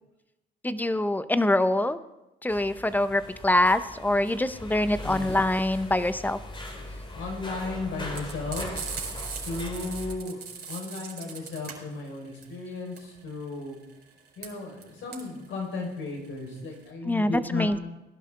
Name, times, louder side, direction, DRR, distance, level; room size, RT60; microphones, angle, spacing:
voice 1, 0.6-2.0 2.4-6.4 17.1-17.8, left 1 dB, 10° left, 12 dB, 0.7 m, -24 dB
sound 1, 2.5-10.2, left 1 dB, 25° left, 2.5 m, -40 dB
voice 2, 4.7-5.3 6.6-8.9 9.4-13.8 14.4-17.8, left 3 dB, 75° left, 1 dB, 4.9 m, -35 dB
Frying (food), 8.1-16.9, right 6 dB, 50° right, 4.8 m, -39 dB
18.5 x 11.5 x 3.8 m, 0.96 s
cardioid pair, 90°, 20 cm